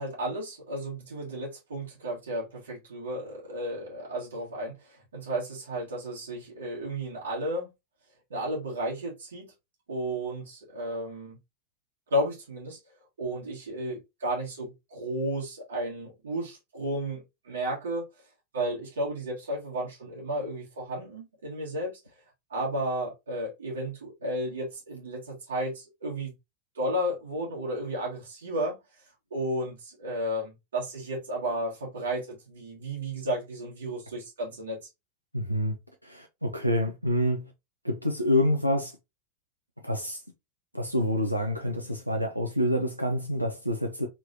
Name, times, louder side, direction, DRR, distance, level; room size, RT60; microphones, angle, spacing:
voice 1, 0.0-7.7 8.3-9.4 9.9-11.4 12.1-12.8 13.2-18.1 18.5-22.0 22.5-26.3 26.7-28.8 29.3-34.8, equal, 65° right, 1.5 m, -33 dB
voice 2, 35.3-35.8 36.0-37.5 37.8-38.9 39.8-40.2 40.7-44.1, left 1 dB, 90° right, 0.5 m, -27 dB
3.3 x 3.1 x 2.6 m
figure-of-eight pair, 90°, 0 cm